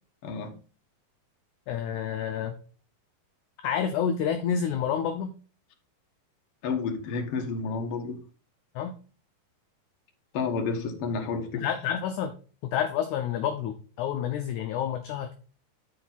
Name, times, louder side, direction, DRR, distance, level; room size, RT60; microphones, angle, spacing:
voice 1, 0.2-0.6 6.6-8.2 10.3-11.6, left 4 dB, 55° left, 4 dB, 1.8 m, -30 dB
voice 2, 1.7-2.6 3.6-5.3 8.8-8.9 11.5-12.3 12.7-15.3, left 8 dB, 75° left, 7 dB, 1.9 m, -29 dB
11.5 x 4.3 x 4.0 m, 0.39 s
omnidirectional pair, 4.1 m